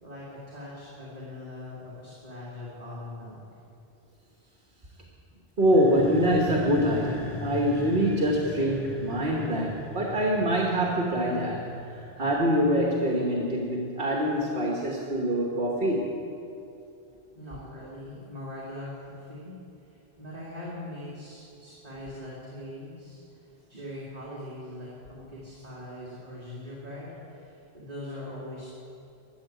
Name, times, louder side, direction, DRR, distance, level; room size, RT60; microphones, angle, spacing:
voice 1, 0.0-3.4 17.3-19.5 19.8-28.7, left 1 dB, 40° right, -8 dB, 2.6 m, -41 dB
sound 1, 5.6-13.2, left 4 dB, 20° left, 0.5 m, -40 dB
voice 2, 5.6-16.1, equal, 60° right, -1 dB, 1.5 m, -25 dB
13.0 x 7.6 x 9.2 m, 2.6 s
omnidirectional pair, 1.0 m